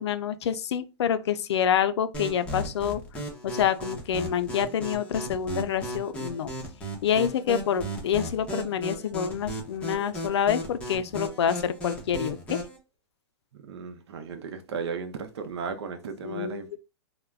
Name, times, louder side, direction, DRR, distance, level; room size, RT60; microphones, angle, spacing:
voice 1, 0.0-6.5 7.0-12.6 16.2-16.6, left 8 dB, 85° left, 0.4 m, -27 dB
sound 1, 2.1-12.8, equal, 10° left, 0.7 m, -36 dB
voice 2, 13.5-16.8, right 5 dB, 80° right, 0.6 m, -35 dB
2.3 x 2.1 x 3.3 m
hypercardioid pair, 140°, 14 cm